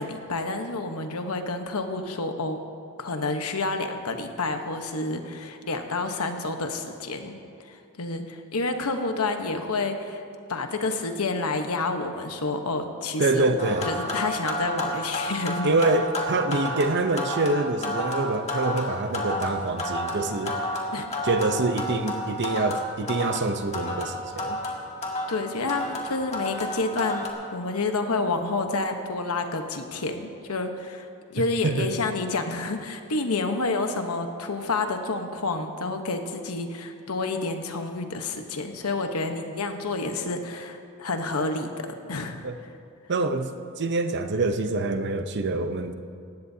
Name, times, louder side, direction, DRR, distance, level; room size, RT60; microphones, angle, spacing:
voice 1, 0.0-2.6 3.0-7.3 7.6-10.2 10.5-15.7 20.9-21.1 25.3-42.5, left 3 dB, 80° left, 5 dB, 1.1 m, -29 dB
voice 2, 13.2-13.9 15.6-20.6 21.2-24.6 31.4-31.9 42.4-42.6 43.1-45.9, right 2 dB, 55° right, 8 dB, 0.7 m, -26 dB
sound 1, 13.6-27.3, left 1 dB, 30° left, 1.6 m, -31 dB
18.5 x 15.0 x 2.8 m, 2.5 s
head